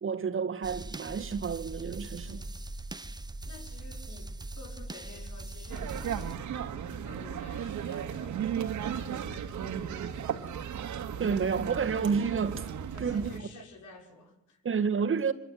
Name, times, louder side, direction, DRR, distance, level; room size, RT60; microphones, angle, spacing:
voice 1, 0.0-2.4 10.0-10.1 11.2-12.7 13.0-13.3 14.6-15.3, right 6 dB, 45° right, 2.0 m, -30 dB
sound 1, 0.6-6.4, right 2 dB, 15° right, 1.2 m, -41 dB
voice 2, 2.2-2.6 3.4-10.4 12.9-14.6, left 2 dB, 80° left, 6.4 m, -52 dB
sound 2, 5.7-13.4, right 8 dB, 75° right, 2.5 m, -35 dB
26.0 x 23.5 x 9.6 m
cardioid pair, 90°, 30 cm